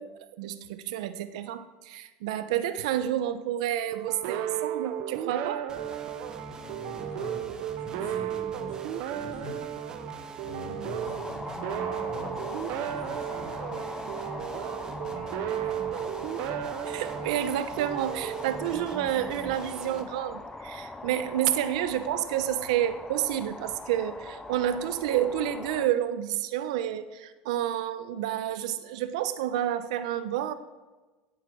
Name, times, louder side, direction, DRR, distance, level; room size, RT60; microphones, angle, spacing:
voice 1, 0.0-5.7 16.0-16.1 16.9-30.5, right 11 dB, 90° right, 13 dB, 1.0 m, -29 dB
sound 1, 3.9-19.3, right 10 dB, 65° right, 1.1 m, -34 dB
sound 2, 5.7-20.0, right 3 dB, 20° right, 1.3 m, -44 dB
voice 2, 6.6-9.8 10.4-13.5, left 3 dB, 85° left, 0 dB, 5.5 m, -44 dB
sound 3, 11.0-25.9, left 2 dB, 10° left, 0.8 m, -41 dB
17.0 x 8.1 x 6.4 m, 1.3 s
cardioid pair, 145°, 3 cm